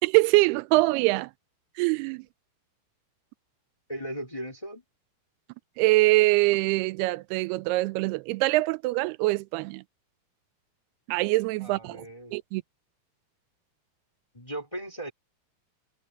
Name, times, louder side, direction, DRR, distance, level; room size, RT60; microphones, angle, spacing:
voice 1, 0.0-1.3 1.8-2.2 5.8-9.8 11.1-12.1 12.3-12.6, right 21 dB, 90° right, 2.6 m, -23 dB
voice 2, 3.9-4.8 11.6-12.4 14.3-15.1, right 1 dB, 10° left, 3.9 m, -37 dB
omnidirectional pair, 4.5 m